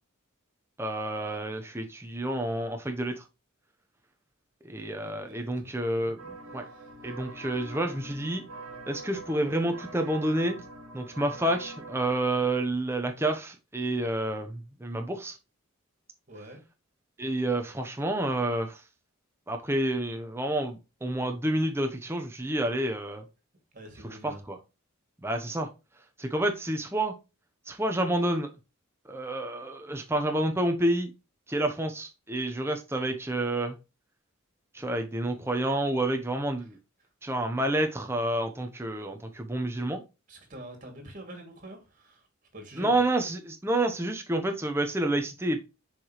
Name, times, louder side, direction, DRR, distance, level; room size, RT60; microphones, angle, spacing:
voice 1, 0.8-3.2 4.6-6.6 7.0-8.4 8.9-10.6 10.9-15.4 17.2-18.8 19.5-23.2 24.2-24.6 25.2-25.7 26.2-27.1 27.7-28.5 29.1-31.1 31.5-33.8 34.7-36.8 37.2-40.0 42.8-45.6, right 1 dB, 10° right, 0.9 m, -29 dB
voice 2, 5.0-6.1 6.6-6.9 16.3-16.6 23.7-24.4 40.3-42.3 42.5-43.0, right 1 dB, 40° right, 2.7 m, -46 dB
sound 1, 6.2-12.2, right 2 dB, 75° right, 1.7 m, -44 dB
6.9 x 5.0 x 3.1 m
head